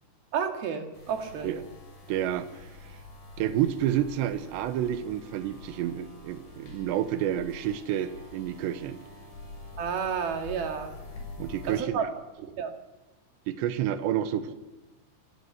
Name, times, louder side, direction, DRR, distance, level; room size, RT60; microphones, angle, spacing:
voice 1, 0.3-1.6 9.8-10.9 11.7-12.0 12.4-12.7, right 7 dB, 65° right, 5 dB, 3.8 m, -31 dB
sound 1, 0.9-11.8, left 3 dB, 75° left, 8.4 m, -46 dB
voice 2, 2.1-2.7 3.4-9.0 11.4-12.0 13.5-14.5, right 11 dB, 85° right, 10 dB, 3.3 m, -29 dB
27.5 x 17.5 x 8.1 m, 1.1 s
omnidirectional pair, 5.0 m